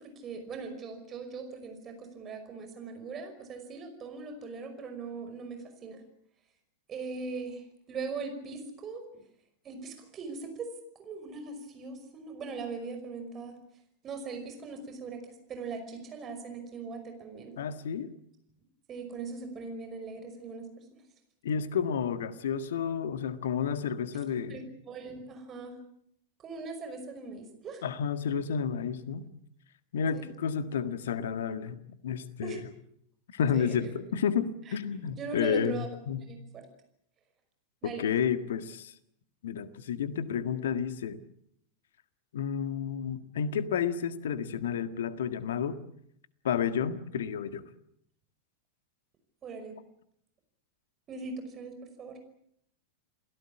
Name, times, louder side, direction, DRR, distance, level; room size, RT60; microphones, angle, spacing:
voice 1, 0.0-6.0 6.9-9.0 9.6-10.7 11.0-13.6 14.0-17.5 18.9-20.8 24.5-25.8 26.4-27.8 30.1-30.3 32.4-32.6 33.5-33.9 34.7-34.8 35.2-35.9 36.3-36.6 37.8-38.0 49.4-49.8 51.1-52.2, right 4 dB, 25° right, 6 dB, 5.5 m, -40 dB
voice 2, 17.6-18.1 21.4-24.6 27.8-29.2 29.9-32.6 33.3-36.2 37.8-38.9 39.4-41.2 42.3-45.8 46.4-47.6, left 7 dB, 60° left, 12 dB, 1.7 m, -31 dB
28.0 x 17.5 x 8.6 m, 0.72 s
figure-of-eight pair, 90°, 0 cm